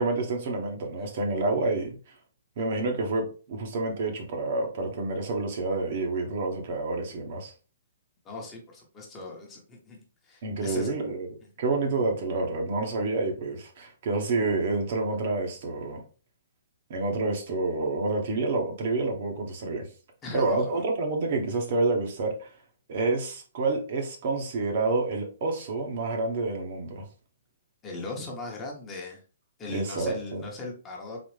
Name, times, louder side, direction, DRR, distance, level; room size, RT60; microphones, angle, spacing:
voice 1, 0.0-2.0 2.6-7.5 10.4-11.3 11.6-16.0 16.9-19.9 20.3-22.5 22.9-27.1 29.7-30.4, right 3 dB, 50° right, 3 dB, 1.0 m, -28 dB
voice 2, 8.2-10.9 20.2-20.9 27.8-29.2 29.6-31.2, left 2 dB, 15° left, -1 dB, 1.0 m, -39 dB
4.0 x 2.5 x 3.2 m, 0.37 s
hypercardioid pair, 155°, 0 cm